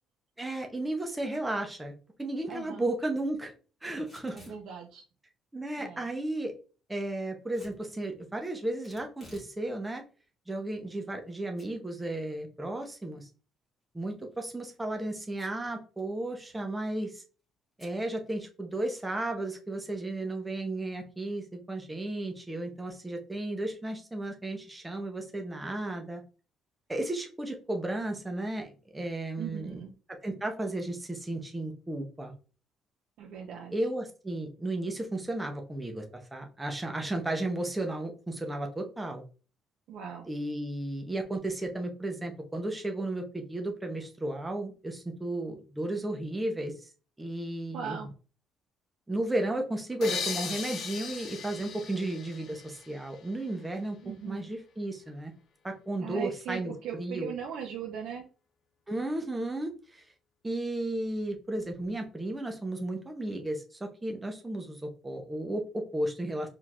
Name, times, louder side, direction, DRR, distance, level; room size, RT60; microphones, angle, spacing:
voice 1, 0.4-3.5 3.8-4.4 5.5-6.5 6.9-10.0 10.5-13.3 13.9-17.2 17.8-26.2 26.9-29.8 30.2-32.3 33.7-36.0 36.3-39.2 40.3-46.7 47.2-48.0 49.1-54.0 54.3-55.3 55.6-57.3 58.9-60.1 60.4-66.5, right 1 dB, 10° right, 3 dB, 0.8 m, -34 dB
voice 2, 2.5-2.8 4.3-5.0 5.8-6.0 29.4-29.9 33.2-33.7 39.9-40.3 47.7-48.1 54.0-54.4 56.0-58.2, right 8 dB, 80° right, 0 dB, 0.8 m, -39 dB
Packing tape duct tape / Tearing, 4.0-4.6 7.5-7.8 8.8-9.5 9.9-10.0 10.7-11.3 11.6-11.7 12.1-12.2 14.1-14.4 15.3-15.7 16.0-16.1 16.3-16.7 17.8-18.0, left 1 dB, 15° left, 2.3 m, -54 dB
sound 1, 50.0-53.6, left 6 dB, 60° left, 0.8 m, -38 dB
4.5 x 3.7 x 2.4 m, 0.35 s
cardioid pair, 150°, 0 cm